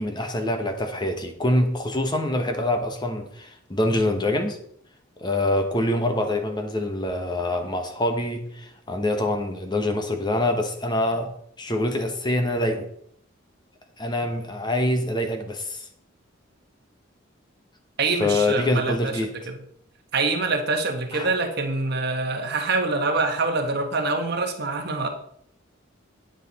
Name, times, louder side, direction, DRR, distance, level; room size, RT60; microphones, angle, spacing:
voice 1, 0.0-4.6 5.2-12.9 14.0-15.9 18.2-19.3 21.1-21.3, left 1 dB, 25° left, 5 dB, 1.1 m, -25 dB
voice 2, 18.0-19.1 19.5-19.6 20.1-25.1, right 3 dB, 55° right, 4 dB, 1.3 m, -25 dB
9.3 x 8.0 x 4.1 m, 0.67 s
head